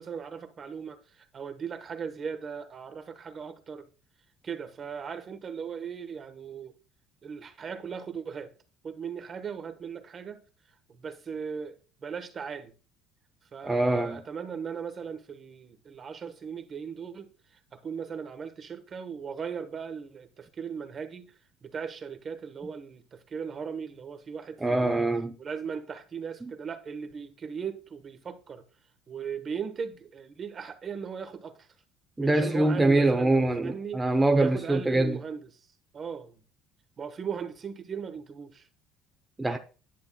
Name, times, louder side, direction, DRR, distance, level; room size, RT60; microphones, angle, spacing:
voice 1, 0.0-3.9 4.4-6.7 7.2-8.5 8.8-10.4 10.9-12.7 13.5-21.3 21.6-24.9 25.4-28.6 29.1-31.7 32.2-34.1 34.4-35.5 35.9-36.4 37.0-38.7, right 6 dB, 40° right, 1.1 m, -38 dB
voice 2, 13.6-14.2 24.6-25.3 32.2-35.2 39.4-39.6, right 2 dB, 15° right, 0.7 m, -24 dB
10.5 x 6.9 x 2.3 m
supercardioid pair, 90°, 0 cm